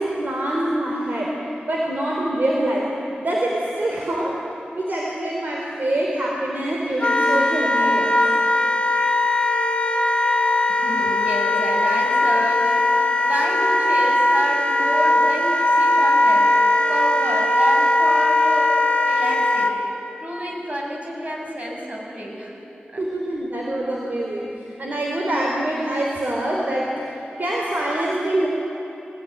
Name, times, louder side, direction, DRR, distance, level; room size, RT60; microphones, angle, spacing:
voice 1, 0.0-1.4 1.7-2.9 3.2-4.4 4.7-8.1 23.0-24.5 24.8-27.1 27.4-28.5, right 1 dB, 55° right, -2 dB, 3.8 m, -24 dB
Wind instrument woodwind instrument, 7.0-19.7, left 2 dB, 25° left, 3.0 m, -19 dB
voice 2, 10.7-16.5 16.9-19.8 20.2-22.6 22.9-23.0, equal, 40° right, -2 dB, 7.6 m, -29 dB
23.0 x 19.0 x 9.6 m, 2.9 s
cardioid pair, 50°, 4 cm